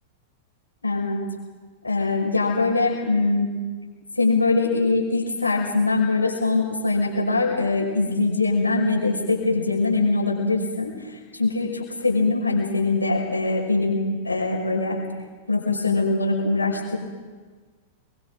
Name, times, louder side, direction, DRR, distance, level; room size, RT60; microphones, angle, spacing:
voice 1, 0.8-1.2 1.8-3.6 4.2-15.0 15.5-17.0, left 3 dB, 90° left, -2 dB, 5.7 m, -22 dB
25.0 x 23.0 x 5.0 m, 1.4 s
figure-of-eight pair, 95°, 0 cm